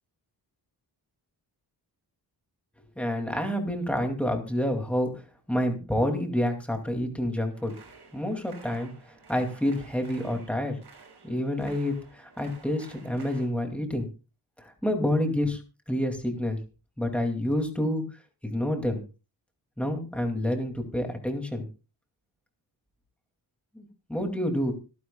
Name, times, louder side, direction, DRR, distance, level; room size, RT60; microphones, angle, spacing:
voice 1, 3.0-5.2 5.5-7.8 8.1-8.9 9.3-10.8 11.2-14.1 14.6-15.6 15.9-16.6 17.0-18.0 18.4-19.0 19.8-21.7 23.7-24.7, left 1 dB, 5° left, 4 dB, 2.4 m, -28 dB
sound 1, 7.5-13.5, right 5 dB, 70° right, 6.1 m, -52 dB
25.5 x 9.5 x 2.3 m, 0.31 s
wide cardioid pair, 175°, 41 cm